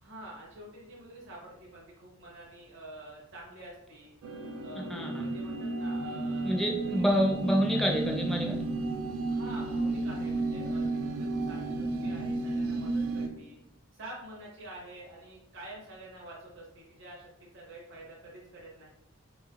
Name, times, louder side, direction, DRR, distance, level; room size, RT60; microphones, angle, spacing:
voice 1, 0.0-4.1 4.6-6.6 6.9-7.0 9.3-13.6 13.9-18.9, right 1 dB, 60° right, -4 dB, 0.8 m, -48 dB
sound 1, 4.2-13.3, right 2 dB, 90° right, 0.4 m, -32 dB
voice 2, 4.9-5.3 6.4-8.6, equal, ahead, 0 dB, 0.4 m, -28 dB
4.3 x 3.1 x 2.4 m, 0.85 s
head